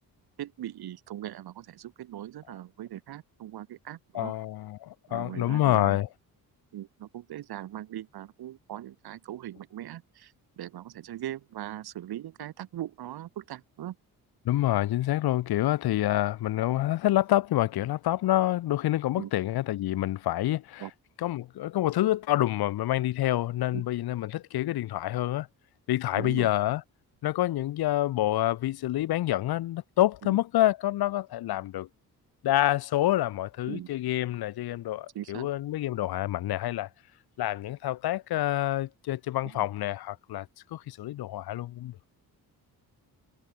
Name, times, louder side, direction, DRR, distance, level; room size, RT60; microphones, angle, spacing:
voice 1, 0.4-4.3 5.1-6.0 6.7-13.9 19.2-19.3 20.8-20.9 23.7-23.8 26.2-26.5 30.2-30.4 33.7-33.9 35.1-35.5 39.6-39.7, right 12 dB, 85° right, 6.5 m, -40 dB
voice 2, 4.1-6.1 14.4-20.9 21.2-25.5 25.9-26.8 27.2-31.9 32.4-36.9 37.4-40.5 40.7-42.0, left 14 dB, 80° left, 1.3 m, -27 dB
cardioid pair, 170°, 37 cm